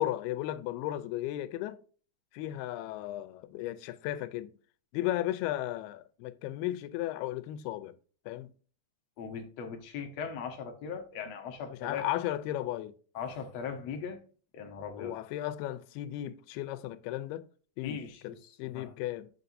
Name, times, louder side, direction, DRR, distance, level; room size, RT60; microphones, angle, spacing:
voice 1, 0.0-1.8 2.3-4.5 4.9-8.0 8.3-8.5 11.7-12.9 15.0-17.5 17.8-18.3 18.6-19.3, left 14 dB, 85° left, 2.6 m, -35 dB
voice 2, 9.2-12.0 13.1-14.2 14.5-15.2 17.8-18.9, left 6 dB, 70° left, 1.6 m, -39 dB
7.7 x 6.7 x 2.6 m
omnidirectional pair, 4.5 m